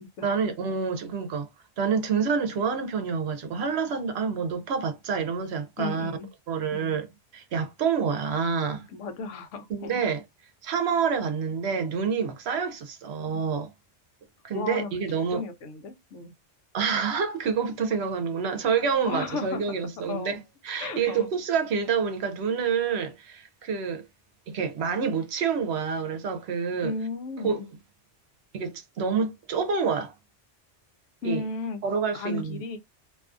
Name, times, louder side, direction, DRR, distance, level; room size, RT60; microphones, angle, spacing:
voice 1, 0.2-1.5 1.8-6.1 6.5-8.9 9.7-10.2 10.6-13.7 14.4-15.4 16.7-24.0 24.5-26.9 27.4-27.6 28.5-30.1 31.2-31.4 31.8-32.6, right 6 dB, 70° right, 0.8 m, -27 dB
voice 2, 5.8-6.3 6.7-6.9 8.9-10.0 13.3-13.4 14.5-16.3 19.1-19.8 20.1-20.4 20.8-21.3 26.8-27.7 31.2-31.8 32.1-32.8, left 3 dB, 85° left, 1.0 m, -34 dB
2.6 x 2.4 x 2.4 m
omnidirectional pair, 1.2 m